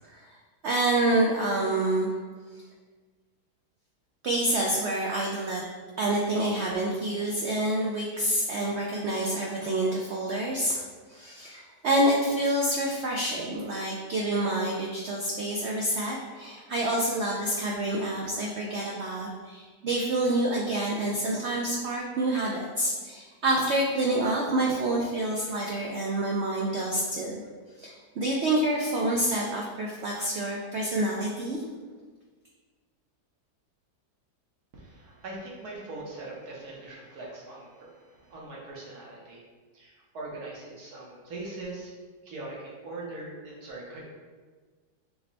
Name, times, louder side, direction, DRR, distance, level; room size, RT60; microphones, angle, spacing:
voice 1, 0.6-2.1 4.2-5.6 6.0-27.3 27.8-31.6, right 1 dB, 85° right, -2 dB, 0.6 m, -27 dB
voice 2, 34.7-39.4 39.7-41.9 42.2-44.0, right 2 dB, 70° right, -4 dB, 1.3 m, -41 dB
5.8 x 2.1 x 4.0 m, 1.4 s
omnidirectional pair, 1.8 m